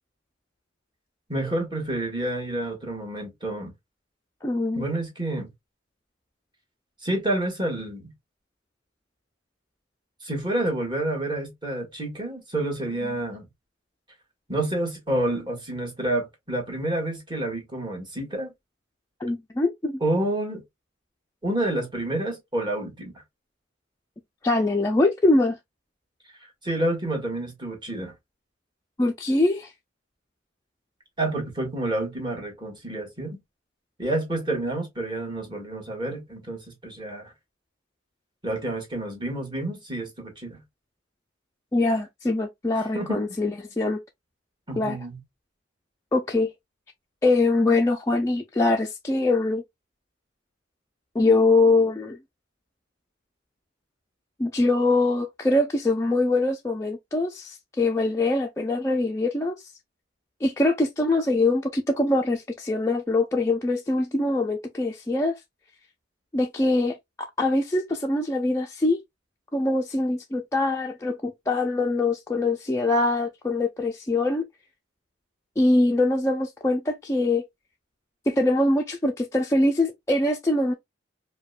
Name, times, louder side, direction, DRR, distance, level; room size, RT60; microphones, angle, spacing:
voice 1, 1.3-3.7 4.7-5.5 7.0-8.1 10.2-13.5 14.5-18.5 20.0-20.6 21.4-23.2 26.6-28.1 31.2-33.4 34.0-37.3 38.4-40.6 42.7-43.2 44.7-45.2, right 1 dB, 25° right, 1.5 m, -29 dB
voice 2, 4.4-4.8 13.0-13.1 19.2-20.0 24.4-25.6 29.0-29.7 41.7-44.0 44.8-45.0 46.1-46.5 47.2-49.6 51.1-52.2 54.4-59.7 60.4-65.4 66.3-69.0 69.5-74.5 75.6-77.4 78.3-80.7, left 2 dB, 15° left, 0.4 m, -23 dB
4.9 x 2.2 x 2.4 m
head